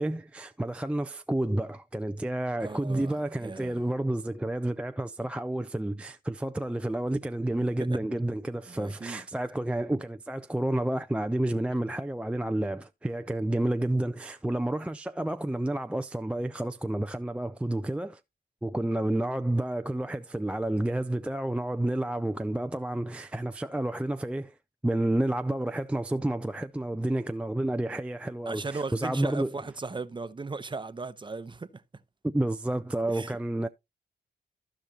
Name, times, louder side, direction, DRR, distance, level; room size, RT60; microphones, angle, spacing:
voice 1, 0.0-18.2 18.6-24.5 24.8-29.5 32.2-33.7, right 1 dB, 5° right, 0.4 m, -30 dB
voice 2, 2.6-3.8 7.9-8.0 8.7-9.2 28.5-31.8 33.1-33.3, right 3 dB, 25° right, 0.8 m, -37 dB
15.0 x 5.0 x 2.8 m
cardioid pair, 65°, 19 cm